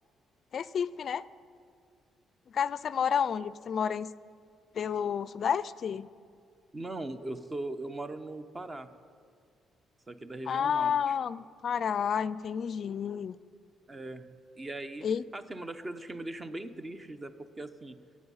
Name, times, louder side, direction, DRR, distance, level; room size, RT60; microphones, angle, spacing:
voice 1, 0.5-1.2 2.5-4.1 4.7-6.1 10.5-13.4 15.0-15.2, left 7 dB, 55° left, 17 dB, 0.4 m, -30 dB
voice 2, 6.7-8.9 10.1-11.2 13.9-15.1 15.3-18.0, right 2 dB, 25° right, 9 dB, 0.9 m, -40 dB
24.5 x 8.5 x 5.6 m, 2.2 s
cardioid pair, 90°, 0 cm